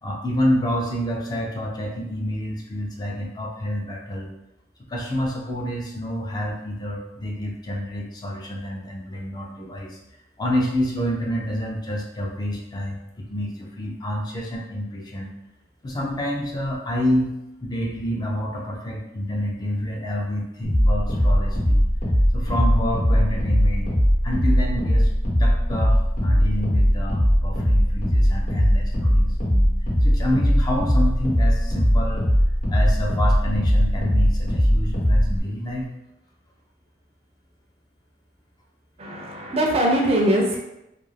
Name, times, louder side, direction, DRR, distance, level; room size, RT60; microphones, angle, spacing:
voice 1, 0.0-4.3 4.9-10.0 10.4-15.3 15.8-17.3 17.6-21.8 22.3-23.9 24.2-25.1 25.4-29.7 30.0-32.3 32.7-35.9, equal, 25° left, -1 dB, 0.4 m, -28 dB
sound 1, 20.6-35.4, equal, 45° left, 0.9 m, -20 dB
voice 2, 39.0-40.6, right 1 dB, 35° right, 1 dB, 0.4 m, -21 dB
2.4 x 2.2 x 3.2 m, 0.87 s
head